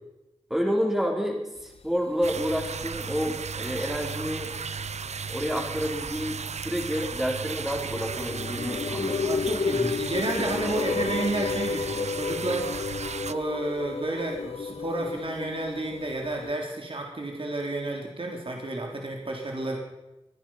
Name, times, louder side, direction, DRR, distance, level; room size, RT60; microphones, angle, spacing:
voice 1, 0.5-4.5 5.3-9.3, equal, 5° right, 0 dB, 4.1 m, -29 dB
sound 1, 2.2-13.3, right 6 dB, 75° right, 0.6 m, -35 dB
sound 2, 2.6-2.7 3.2-3.3 3.6-4.6 5.3-5.4 7.2-7.3 7.7-16.6, left 5 dB, 60° left, 0.5 m, -32 dB
voice 2, 9.2-12.8 13.2-19.8, right 2 dB, 50° right, 0 dB, 3.5 m, -31 dB
23.5 x 10.0 x 5.7 m, 0.98 s
cardioid pair, 45°, 11 cm